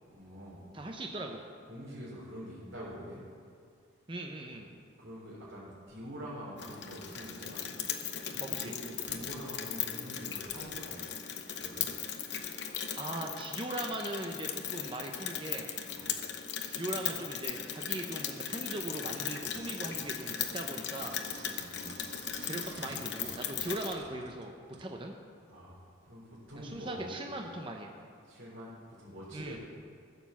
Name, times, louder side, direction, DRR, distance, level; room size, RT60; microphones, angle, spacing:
voice 1, 0.0-0.6 0.9-1.0 1.7-3.2 4.5-4.6 5.0-7.6 8.3-11.0 11.5-11.9 15.9-16.1 21.5-22.0 25.5-27.2 28.3-29.6, equal, 80° right, -10 dB, 3.7 m, -45 dB
voice 2, 0.7-1.4 4.1-4.7 8.4-8.7 13.0-15.7 16.7-21.2 22.4-25.1 26.6-27.9 29.3-29.6, right 1 dB, 25° right, 1 dB, 0.7 m, -39 dB
Rain, 6.6-23.9, left 8 dB, 60° left, 0.9 m, -38 dB
sound 1, 19.4-24.9 25.5-25.6, right 2 dB, 60° right, 1.1 m, -51 dB
14.5 x 6.9 x 7.2 m, 2.2 s
head